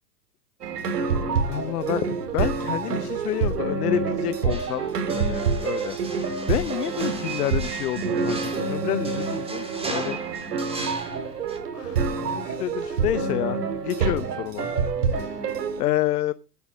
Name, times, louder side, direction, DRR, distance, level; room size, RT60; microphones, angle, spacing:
sound 1, 0.6-15.8, right 5 dB, 80° right, 3.6 m, -27 dB
voice 1, 0.9-4.9 5.1-10.2 11.7-14.7 15.1-15.4 15.8-16.3, left 14 dB, 70° left, 0.9 m, -29 dB
sound 2, 4.5-11.6, right 2 dB, 10° right, 3.8 m, -38 dB
13.5 x 9.5 x 6.4 m
hypercardioid pair, 125°, 47 cm